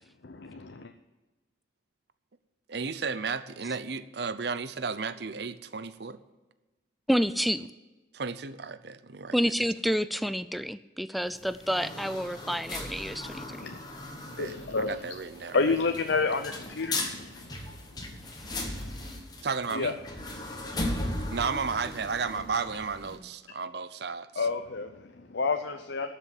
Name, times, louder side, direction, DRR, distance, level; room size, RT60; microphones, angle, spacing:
voice 1, 0.2-0.9 13.6-13.8 14.4-15.1 15.5-17.6 18.7-19.0 19.7-19.9 20.4-20.8 24.4-26.1, left 4 dB, 70° left, 6 dB, 0.7 m, -30 dB
voice 2, 2.7-6.2 8.1-9.4 14.4-15.6 19.4-19.9 21.3-24.5, right 5 dB, 60° right, 13 dB, 0.7 m, -33 dB
voice 3, 7.1-7.7 9.3-13.7 18.7-18.8, equal, ahead, 13 dB, 0.3 m, -29 dB
sound 1, 11.2-23.2, left 1 dB, 20° left, 1.4 m, -38 dB
12.0 x 6.9 x 9.7 m, 1.2 s
head